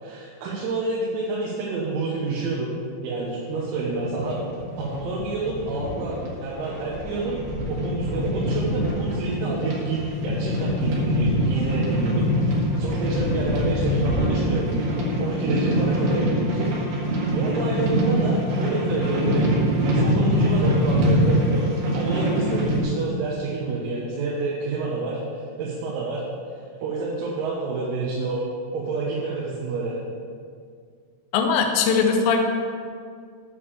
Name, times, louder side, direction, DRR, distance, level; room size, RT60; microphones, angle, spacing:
voice 1, 0.0-2.7 3.0-4.4 4.8-7.4 7.7-14.7 15.2-16.8 17.3-19.5 19.9-21.7 21.9-25.2 25.6-26.2 26.8-28.5 28.7-30.0, right 3 dB, 90° right, -5 dB, 4.0 m, -28 dB
sound 1, 3.5-22.8, equal, 65° right, 3.0 m, -24 dB
voice 2, 31.3-32.4, left 5 dB, 85° left, 3 dB, 2.4 m, -20 dB
9.3 x 5.2 x 6.9 m, 2.1 s
omnidirectional pair, 6.0 m